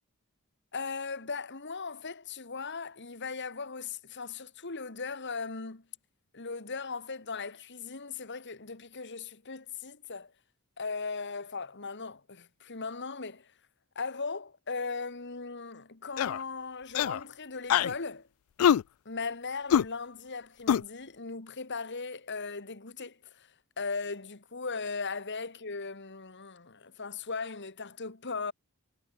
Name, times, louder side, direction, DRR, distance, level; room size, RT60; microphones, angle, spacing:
voice 1, 0.7-5.8 6.3-10.3 10.8-13.5 14.0-18.3 19.1-23.5 23.8-28.5, left 4 dB, 55° left, 2.1 m, -38 dB
sound 1, 16.2-16.4 16.9-17.2 17.7-17.9 18.6-18.8 19.7-19.8 20.7-20.8, left 9 dB, 75° left, 0.3 m, -23 dB
head